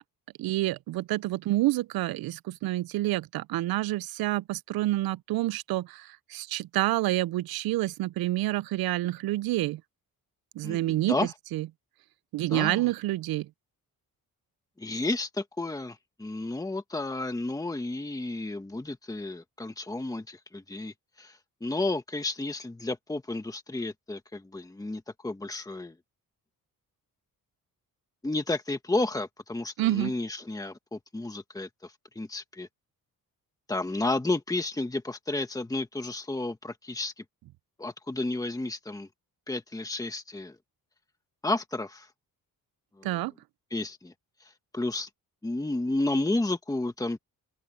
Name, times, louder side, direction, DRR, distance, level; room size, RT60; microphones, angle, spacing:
voice 1, 0.4-9.8 10.6-11.2 11.5-11.7 12.3-13.5 29.8-30.1 43.0-43.3, right 16 dB, 85° right, 0.5 m, -28 dB
voice 2, 10.6-11.3 12.5-12.9 14.8-26.0 28.2-32.7 33.7-37.2 37.8-39.1 39.5-40.6 41.4-42.1 43.0-43.2 43.7-44.1 44.7-45.1 45.4-47.2, left 2 dB, 10° left, 1.6 m, -32 dB
open air
cardioid pair, 140°, 35 cm